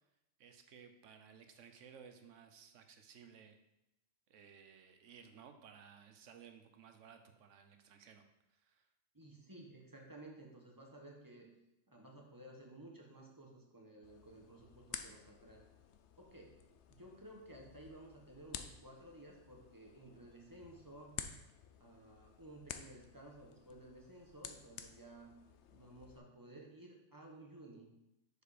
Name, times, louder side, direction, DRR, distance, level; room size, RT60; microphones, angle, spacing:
voice 1, 0.4-3.6 4.3-8.2 8.5-8.9, right 7 dB, 80° right, 7 dB, 1.1 m, -58 dB
voice 2, 9.1-11.5 11.9-15.6 16.2-16.6 16.9-21.2 21.8-25.3 25.7-27.9, right 1 dB, 15° right, 0 dB, 1.1 m, -55 dB
sound 1, 14.0-26.2, left 8 dB, 70° left, 0.8 m, -52 dB
6.7 x 4.9 x 5.0 m, 0.88 s
omnidirectional pair, 1.3 m